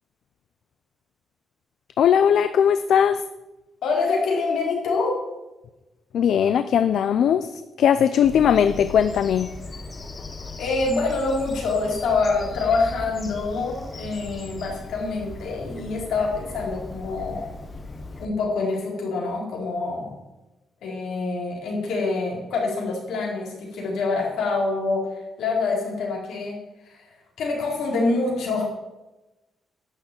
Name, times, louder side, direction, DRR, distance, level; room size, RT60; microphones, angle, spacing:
voice 1, 2.0-3.2 6.1-9.5, left 8 dB, 60° left, 12 dB, 0.5 m, -19 dB
voice 2, 3.8-5.2 10.6-17.4 18.2-20.1 20.8-26.6 26.8-28.6, left 3 dB, 80° left, -2 dB, 4.4 m, -26 dB
Bird vocalization bird call bird song, 8.2-18.3, left 3 dB, 25° left, 1.0 m, -38 dB
11.5 x 6.5 x 8.7 m, 1.0 s
wide cardioid pair, 175°, 0 cm